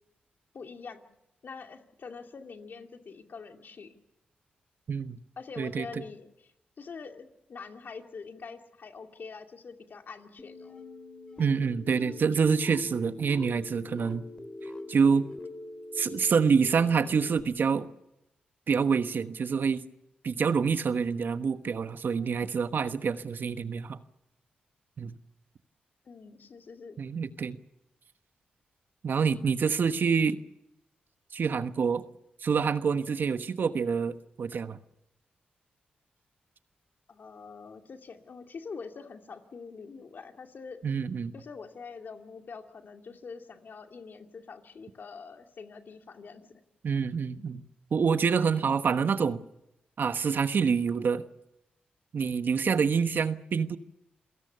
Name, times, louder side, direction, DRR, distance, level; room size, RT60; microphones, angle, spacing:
voice 1, 0.5-1.0 1.4-3.9 5.4-6.5 6.8-10.8 22.2-22.3 26.0-27.0 37.1-40.8 41.3-46.5, left 5 dB, 60° left, 5 dB, 2.4 m, -45 dB
voice 2, 4.9-5.2 5.6-6.0 11.4-14.2 14.6-15.3 15.9-17.9 18.7-19.8 20.2-24.0 25.0-25.1 27.0-27.6 29.0-30.4 31.3-32.0 32.4-34.8 40.8-41.3 46.8-49.4 50.0-51.2 52.1-53.8, right 6 dB, 60° right, 11 dB, 1.2 m, -27 dB
sound 1, 10.4-17.4, left 2 dB, 25° left, 2.5 m, -43 dB
28.0 x 17.5 x 6.9 m, 0.86 s
supercardioid pair, 45°, 4 cm